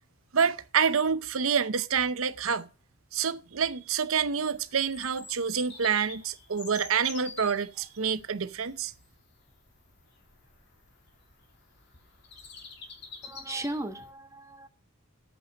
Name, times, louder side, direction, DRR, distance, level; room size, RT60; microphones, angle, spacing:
voice 1, 0.3-2.7 3.1-8.9, right 6 dB, 70° right, 0.7 m, -27 dB
Bird vocalization bird call bird song, 4.5-14.1, left 4 dB, 55° left, 2.7 m, -48 dB
voice 2, 13.2-14.7, right 1 dB, 15° right, 1.1 m, -36 dB
8.7 x 6.6 x 7.4 m
head